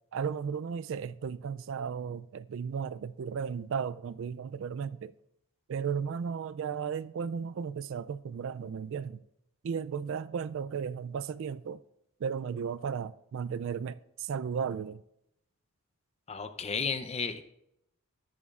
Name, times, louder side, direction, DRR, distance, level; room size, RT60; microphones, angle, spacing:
voice 1, 0.1-5.1 5.7-9.2 9.6-11.8 12.2-15.0, right 6 dB, 60° right, 0.3 m, -35 dB
voice 2, 16.3-17.4, left 5 dB, 30° left, 0.6 m, -33 dB
13.5 x 10.0 x 2.4 m
head